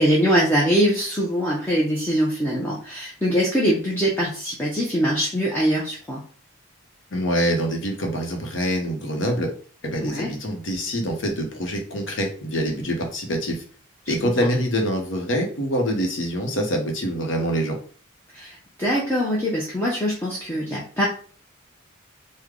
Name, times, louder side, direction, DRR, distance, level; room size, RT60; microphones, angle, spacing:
voice 1, 0.0-6.2 10.0-10.3 18.3-21.1, equal, 10° left, -5 dB, 0.5 m, -23 dB
voice 2, 7.1-9.5 9.8-13.6 14.1-17.8, equal, 65° left, 2 dB, 0.8 m, -25 dB
3.3 x 2.1 x 3.6 m, 0.43 s
head